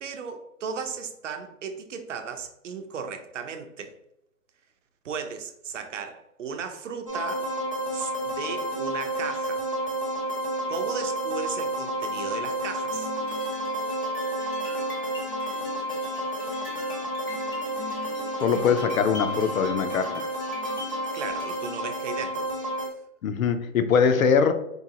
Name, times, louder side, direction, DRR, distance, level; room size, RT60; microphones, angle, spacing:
voice 1, 0.0-3.9 5.0-7.5 7.9-9.6 10.7-13.1 21.1-22.5, right 6 dB, 60° right, 0.7 m, -35 dB
sound 1, 7.1-22.9, right 1 dB, 25° right, 0.4 m, -30 dB
sound 2, 12.9-21.8, left 1 dB, 15° left, 0.6 m, -42 dB
voice 2, 18.4-20.3 23.2-24.5, left 6 dB, 75° left, 0.7 m, -22 dB
4.5 x 2.7 x 2.9 m
hypercardioid pair, 165°, 41 cm